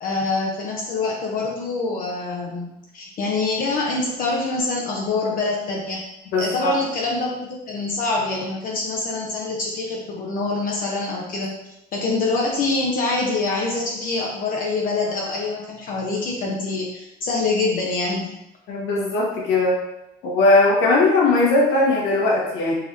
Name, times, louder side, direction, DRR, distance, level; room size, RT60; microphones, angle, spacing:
voice 1, 0.0-6.0 6.4-11.5 11.9-18.3, left 3 dB, 55° left, -2 dB, 0.6 m, -25 dB
voice 2, 6.3-6.7 18.7-19.7 20.2-22.7, left 2 dB, 85° left, -5 dB, 1.4 m, -19 dB
4.0 x 3.0 x 2.6 m, 0.89 s
cardioid pair, 110°, 17 cm